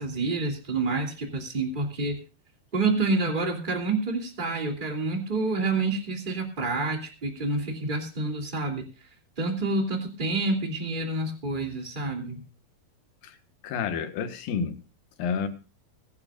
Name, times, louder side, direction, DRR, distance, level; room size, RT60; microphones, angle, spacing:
voice 1, 0.0-2.2 2.7-8.9 9.4-12.4, right 3 dB, 15° right, 2 dB, 2.5 m, -28 dB
voice 2, 13.6-14.8 15.2-15.5, left 6 dB, 70° left, 9 dB, 3.0 m, -29 dB
22.5 x 11.0 x 2.5 m, 0.33 s
omnidirectional pair, 4.4 m